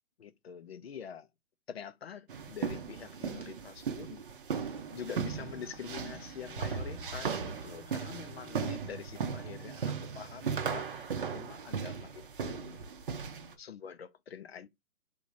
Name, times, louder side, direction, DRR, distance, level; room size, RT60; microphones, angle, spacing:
voice 1, 0.2-1.3 1.7-4.2 4.9-12.8 13.6-14.7, left 7 dB, 45° left, 0.6 m, -45 dB
sound 1, 2.3-13.5, right 6 dB, 40° right, 0.7 m, -37 dB
Bowed string instrument, 4.6-8.8, right 1 dB, 15° right, 0.9 m, -54 dB
4.2 x 2.7 x 4.6 m
hypercardioid pair, 160°, 43 cm